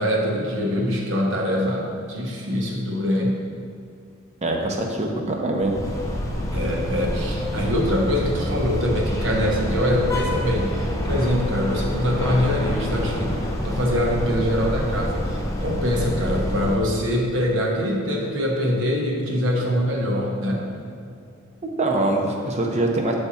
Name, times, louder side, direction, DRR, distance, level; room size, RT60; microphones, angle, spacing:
voice 1, 0.0-3.4 6.5-13.4 13.6-20.6, equal, 65° right, -1 dB, 1.1 m, -24 dB
voice 2, 4.4-5.8 21.8-23.1, right 2 dB, 35° right, 2 dB, 0.7 m, -23 dB
sound 1, 5.6-16.8, left 1 dB, 15° left, 0.6 m, -27 dB
8.1 x 3.5 x 4.1 m, 2.4 s
head